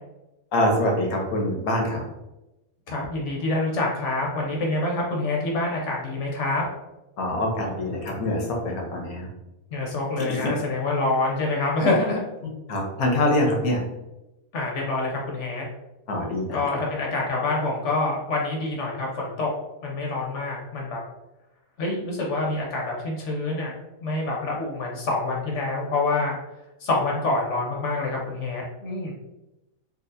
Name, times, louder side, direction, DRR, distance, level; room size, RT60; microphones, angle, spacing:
voice 1, 0.5-2.0 7.2-9.3 10.3-10.4 12.7-13.8 16.1-16.6, left 1 dB, 90° left, 0 dB, 1.3 m, -24 dB
voice 2, 2.9-6.6 9.7-12.2 14.5-15.7 16.5-19.5 19.8-21.0 21.8-23.7 24.0-26.4 26.8-29.1, left 2 dB, 60° left, -2 dB, 1.0 m, -26 dB
3.9 x 2.4 x 2.6 m, 0.96 s
omnidirectional pair, 1.5 m